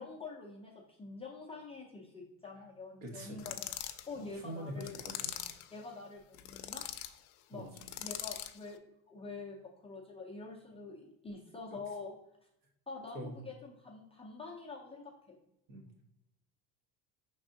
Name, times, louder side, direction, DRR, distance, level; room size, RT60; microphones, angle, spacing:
voice 1, 0.0-3.7 4.1-5.0 5.7-6.8 7.5-7.6 8.0-8.8 9.1-12.1 12.9-15.4, left 3 dB, 15° left, -2 dB, 0.5 m, -46 dB
voice 2, 3.0-3.5 4.1-5.6 7.5-7.9 13.1-13.3 15.7-15.8, right 1 dB, 55° right, 1 dB, 1.2 m, -45 dB
sound 1, 3.4-4.1 4.8-5.7 6.3-7.1 7.8-8.6, left 13 dB, 80° left, 0.5 m, -41 dB
5.3 x 3.4 x 2.6 m, 0.82 s
cardioid pair, 140°, 41 cm